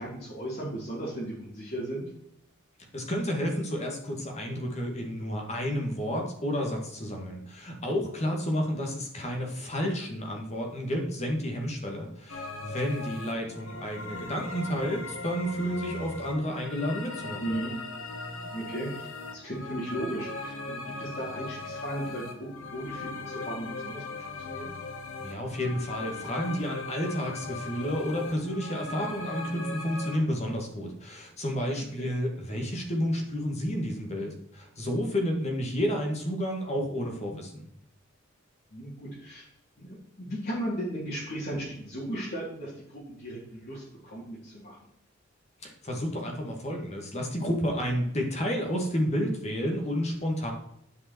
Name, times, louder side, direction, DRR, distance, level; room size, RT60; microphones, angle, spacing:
voice 1, 0.0-2.0 17.4-17.7 18.5-24.7 32.0-32.1 38.7-39.5 39.8-44.8, right 1 dB, 50° left, -7 dB, 3.4 m, -36 dB
voice 2, 2.9-17.5 25.2-37.7 45.6-50.5, equal, 35° left, 2 dB, 2.1 m, -31 dB
sound 1, 12.3-30.2, left 3 dB, 85° left, 1.5 m, -39 dB
10.0 x 5.5 x 4.5 m, 0.75 s
head